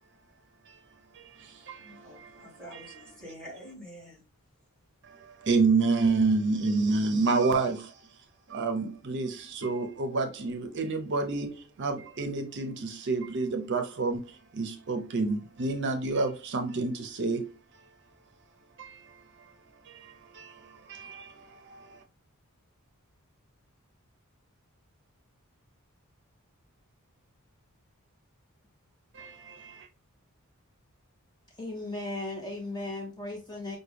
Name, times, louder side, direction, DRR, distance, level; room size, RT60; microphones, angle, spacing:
voice 1, 1.1-3.0 5.1-8.1 8.5-17.5 18.8-19.5 19.8-22.0 29.1-29.9, right 3 dB, 55° right, 0.6 m, -29 dB
voice 2, 1.8-4.2, equal, 5° left, 1.9 m, -47 dB
voice 3, 31.6-33.8, left 2 dB, 20° left, 0.7 m, -36 dB
5.7 x 2.2 x 3.3 m
head